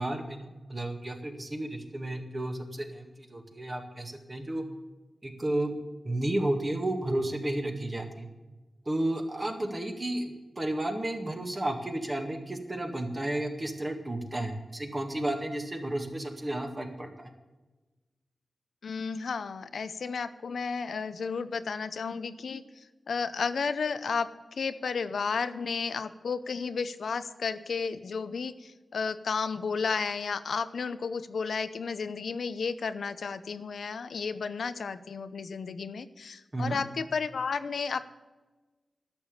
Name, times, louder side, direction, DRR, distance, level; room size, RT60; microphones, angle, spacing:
voice 1, 0.0-4.6 5.2-5.7 6.0-8.3 8.9-17.3 36.5-36.8, right 1 dB, 30° right, 4 dB, 2.0 m, -32 dB
voice 2, 18.8-22.6 23.1-24.3 24.6-38.0, left 5 dB, 90° left, 13 dB, 0.7 m, -32 dB
11.5 x 7.0 x 9.8 m, 1.2 s
wide cardioid pair, 80°, 0 cm